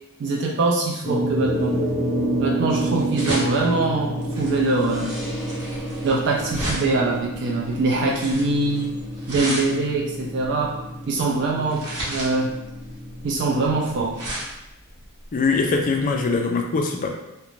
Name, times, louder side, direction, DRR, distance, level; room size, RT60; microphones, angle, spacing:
voice 1, 0.2-1.7 2.4-5.2 6.0-8.9 9.3-10.7 11.1-12.5 13.2-14.1, right 3 dB, 55° right, -2 dB, 0.4 m, -23 dB
sound 1, 1.0-14.4, right 1 dB, ahead, 0.6 m, -29 dB
sound 2, 1.9-16.4, right 1 dB, 85° right, 0.9 m, -34 dB
voice 2, 15.3-17.1, left 4 dB, 35° left, 2 dB, 0.3 m, -22 dB
2.4 x 2.1 x 3.0 m, 0.91 s
head